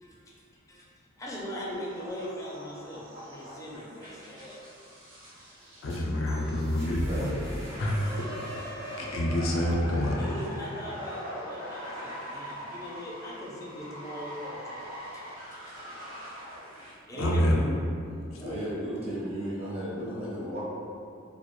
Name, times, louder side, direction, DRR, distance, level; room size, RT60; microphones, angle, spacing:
voice 1, 0.0-0.3 0.7-0.9 1.2-4.6 8.0-8.3 10.2-14.9 15.1-15.9 17.1-17.4 18.4-18.7, equal, 15° left, -5 dB, 0.4 m, -41 dB
sound 1, 1.7-6.8 7.3-16.9, equal, 90° right, 0.7 m, -42 dB
sound 2, 5.6-11.5, equal, 60° right, 0.9 m, -43 dB
voice 2, 5.8-7.3 7.8-8.1 9.0-10.3 17.2-17.6, left 1 dB, 80° left, -1 dB, 0.4 m, -27 dB
voice 3, 6.8-7.6 17.1-17.7 18.4-20.6, equal, 30° right, -7 dB, 0.6 m, -35 dB
2.2 x 2.1 x 2.9 m, 2.4 s
head